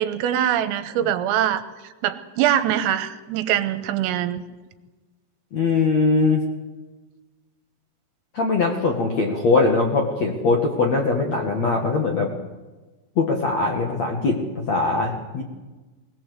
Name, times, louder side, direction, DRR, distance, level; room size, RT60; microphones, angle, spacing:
voice 1, 0.0-1.6 2.0-4.4, right 11 dB, 85° right, 11 dB, 3.7 m, -23 dB
voice 2, 5.5-6.4 8.3-12.3 13.2-15.4, left 3 dB, 60° left, 2 dB, 1.9 m, -21 dB
22.5 x 18.0 x 8.2 m, 1.2 s
omnidirectional pair, 5.9 m